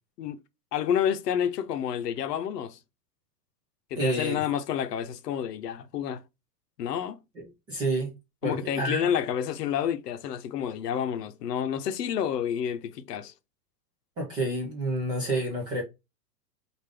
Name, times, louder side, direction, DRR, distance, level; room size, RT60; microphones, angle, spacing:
voice 1, 0.7-2.8 3.9-6.2 6.8-7.2 8.4-13.3, left 9 dB, 75° left, 0.7 m, -29 dB
voice 2, 4.0-4.4 7.4-8.1 8.4-9.1 14.2-15.8, right 2 dB, 10° right, 0.3 m, -29 dB
3.4 x 2.6 x 3.3 m
hypercardioid pair, 125°, 49 cm